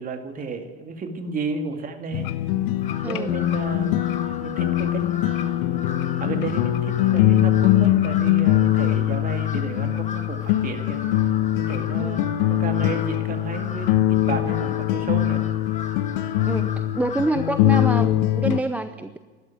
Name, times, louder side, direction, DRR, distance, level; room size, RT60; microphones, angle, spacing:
voice 1, 0.0-2.3 3.0-4.0 4.4-5.0 5.4-5.6 6.2-11.0 11.6-15.4, right 3 dB, 25° right, 6 dB, 2.1 m, -32 dB
sound 1, 2.1-18.6, left 13 dB, 55° left, 0.9 m, -22 dB
Crow, 2.8-18.2, left 5 dB, 20° left, 1.8 m, -38 dB
voice 2, 3.0-3.4 12.0-12.2 16.5-19.2, right 2 dB, 5° right, 10 dB, 0.5 m, -27 dB
12.5 x 12.0 x 9.2 m, 1.4 s
hypercardioid pair, 90°, 33 cm